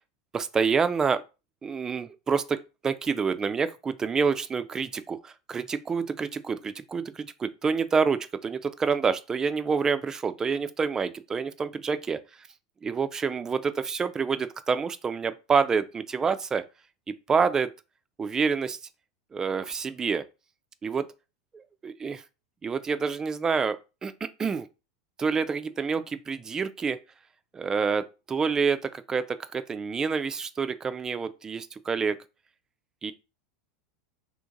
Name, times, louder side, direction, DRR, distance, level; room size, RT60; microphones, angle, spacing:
voice 1, 0.3-1.2 1.6-2.6 2.8-12.2 12.8-16.6 17.3-17.7 18.2-18.8 19.3-20.2 20.8-21.0 21.5-22.2 22.6-23.8 24.0-24.7 25.2-27.0 27.5-32.2 33.0-33.1, right 5 dB, 20° right, 0.3 m, -27 dB
2.8 x 2.5 x 3.8 m
hypercardioid pair, 105°, 3 cm